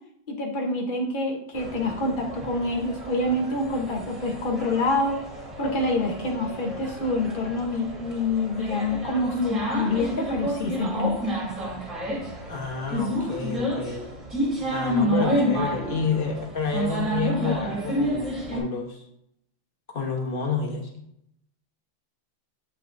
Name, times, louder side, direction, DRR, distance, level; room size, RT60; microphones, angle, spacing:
voice 1, 0.3-5.2 5.6-11.2, left 2 dB, 85° left, 0 dB, 0.4 m, -26 dB
sound 1, 1.5-18.6, equal, 15° right, 2.9 m, -30 dB
voice 2, 12.5-14.1 14.7-19.0 19.9-21.0, left 5 dB, 40° left, 0 dB, 0.8 m, -29 dB
8.2 x 5.6 x 2.6 m, 0.76 s
omnidirectional pair, 2.4 m